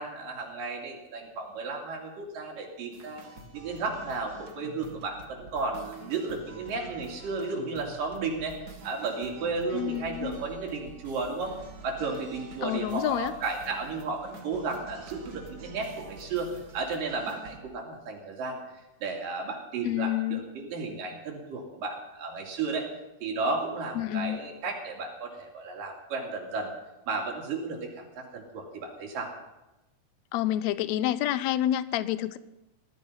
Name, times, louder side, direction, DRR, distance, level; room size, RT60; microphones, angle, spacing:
voice 1, 0.0-3.2 3.5-8.6 8.8-11.6 11.8-18.6 19.0-22.9 23.2-26.7 27.1-29.3, right 3 dB, 80° right, 0 dB, 4.3 m, -33 dB
sound 1, 2.9-17.6, right 3 dB, 40° right, 1.5 m, -47 dB
voice 2, 9.7-10.3 12.6-13.3 19.8-20.4 23.9-24.4 30.3-32.4, left 13 dB, 75° left, 15 dB, 1.7 m, -28 dB
19.5 x 12.5 x 5.6 m, 0.98 s
omnidirectional pair, 3.8 m